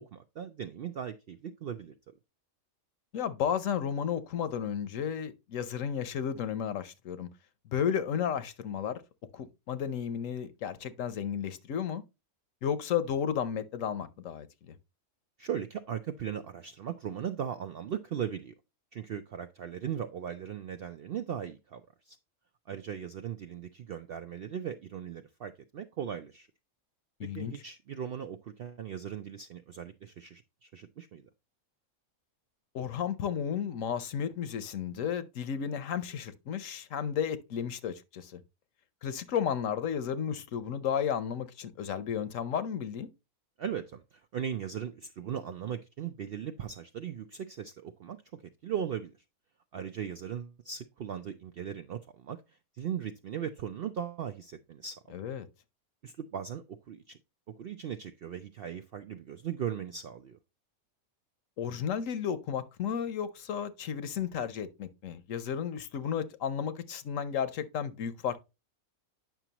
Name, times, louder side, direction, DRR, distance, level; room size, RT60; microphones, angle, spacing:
voice 1, 0.0-2.0 15.4-18.5 18.9-22.2 22.7-26.5 27.2-31.2 43.6-49.1 49.7-52.4 52.8-55.1 56.0-57.2 57.6-60.4, right 8 dB, 70° right, 0.5 m, -38 dB
voice 2, 3.1-7.3 7.7-9.0 9.3-12.0 12.6-14.7 27.2-27.6 32.7-38.4 39.0-43.1 55.1-55.5 61.6-68.4, left 8 dB, 70° left, 1.1 m, -33 dB
9.1 x 6.0 x 2.9 m
omnidirectional pair, 1.5 m